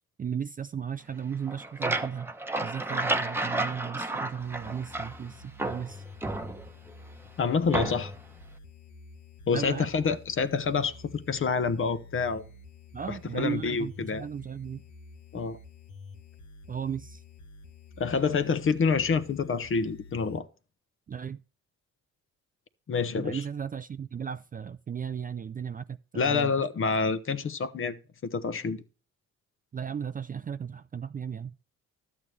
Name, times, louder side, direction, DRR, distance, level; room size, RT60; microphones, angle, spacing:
voice 1, 0.2-2.3 2.6-6.0 9.5-9.9 12.9-14.8 16.7-17.2 21.1-21.4 23.1-26.7 29.7-31.5, right 7 dB, 30° right, 0.4 m, -35 dB
sound 1, 1.3-5.3 5.6-6.9 7.7-8.3, right 2 dB, 10° right, 1.0 m, -32 dB
sound 2, 4.4-20.4, left 3 dB, 75° left, 1.2 m, -49 dB
voice 2, 7.4-8.1 9.5-12.4 13.1-14.3 15.3-15.6 18.0-20.5 22.9-23.4 26.1-28.0 28.2-28.8, left 5 dB, 45° left, 1.0 m, -27 dB
12.5 x 8.4 x 3.3 m
cardioid pair, 90°, 30 cm